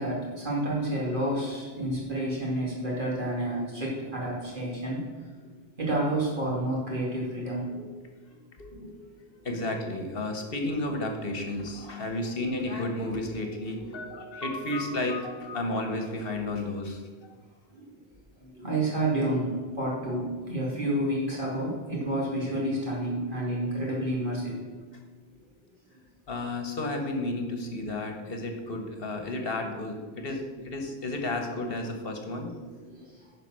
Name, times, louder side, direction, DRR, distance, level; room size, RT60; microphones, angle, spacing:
voice 1, 0.0-5.1 5.8-7.7 17.7-18.0 18.5-24.6 32.4-32.5 32.9-33.0, right 1 dB, 50° right, -4 dB, 2.7 m, -29 dB
voice 2, 8.6-17.3 26.3-32.5, left 2 dB, 60° left, 5 dB, 1.4 m, -32 dB
9.9 x 5.2 x 6.2 m, 1.5 s
omnidirectional pair, 1.1 m